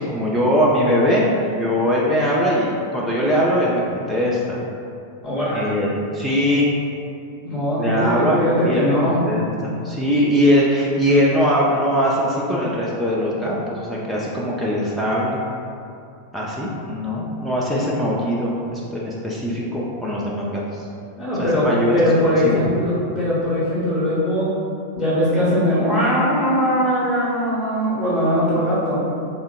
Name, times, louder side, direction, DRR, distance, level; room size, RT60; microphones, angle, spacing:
voice 1, 0.0-4.6 5.5-6.7 7.8-15.4 16.3-20.9 21.4-21.9 22.4-22.6, equal, ahead, -6 dB, 0.4 m, -21 dB
voice 2, 5.2-5.7 7.4-9.2 21.2-21.7 21.9-24.5 24.9-29.0, equal, 30° left, -10 dB, 1.1 m, -20 dB
3.6 x 2.1 x 3.6 m, 2.5 s
figure-of-eight pair, 90°, 0 cm